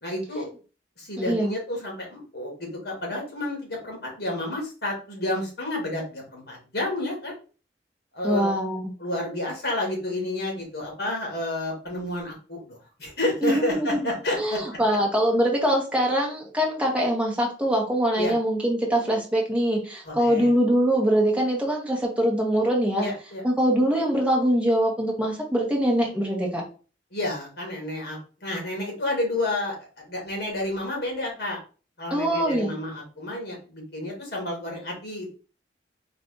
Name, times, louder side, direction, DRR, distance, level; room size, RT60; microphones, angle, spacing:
voice 1, 0.0-0.5 1.0-7.3 8.1-8.5 9.0-14.8 18.2-18.3 20.0-20.5 23.0-23.4 27.1-31.6 32.0-35.3, left 1 dB, 60° left, 0 dB, 2.3 m, -30 dB
voice 2, 8.2-8.9 13.4-14.0 14.3-23.1 23.4-26.6 32.1-32.7, equal, 5° right, -2 dB, 1.3 m, -23 dB
4.1 x 3.2 x 3.9 m, 0.36 s
head